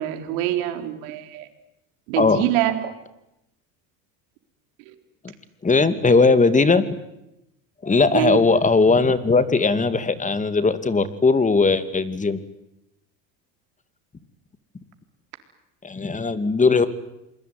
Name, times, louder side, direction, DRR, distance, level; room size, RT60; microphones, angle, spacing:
voice 1, 0.0-1.5 2.1-2.9 4.9-5.0 5.8-5.9 8.1-8.4, right 13 dB, 80° right, 7 dB, 4.1 m, -25 dB
voice 2, 5.6-6.9 7.8-12.4 15.8-16.9, left 4 dB, 20° left, 12 dB, 2.5 m, -18 dB
28.0 x 21.5 x 9.6 m, 0.86 s
supercardioid pair, 100°, 39 cm